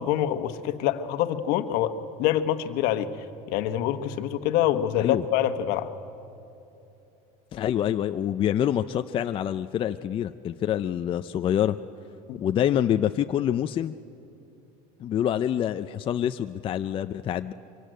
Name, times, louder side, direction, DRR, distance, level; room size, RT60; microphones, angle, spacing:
voice 1, 0.0-3.1 3.5-5.9 12.3-12.4, left 11 dB, 65° left, 9 dB, 1.3 m, -26 dB
voice 2, 7.5-11.8 12.4-13.9 15.0-17.5, left 10 dB, 30° left, 9 dB, 0.5 m, -26 dB
24.0 x 16.5 x 9.2 m, 2.9 s
cardioid pair, 135°, 17 cm